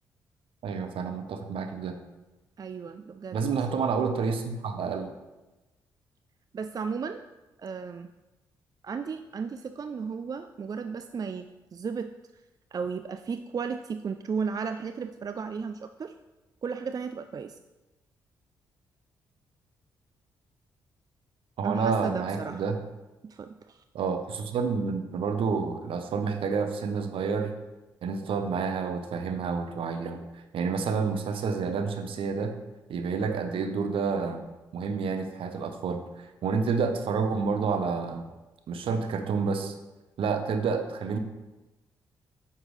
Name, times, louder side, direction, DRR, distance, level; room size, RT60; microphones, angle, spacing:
voice 1, 0.6-2.0 3.3-5.1 21.6-22.8 23.9-27.5 28.0-32.6 32.9-34.4 34.7-38.3 38.7-39.7 40.2-41.2, right 5 dB, 60° right, 7 dB, 0.9 m, -29 dB
voice 2, 2.6-3.4 6.5-7.2 7.6-8.1 8.8-11.5 11.7-12.1 12.7-16.1 16.6-17.6 21.6-22.7 23.2-23.8, right 5 dB, 40° right, 9 dB, 0.4 m, -34 dB
9.4 x 5.8 x 3.2 m, 1.1 s
hypercardioid pair, 40°, 10 cm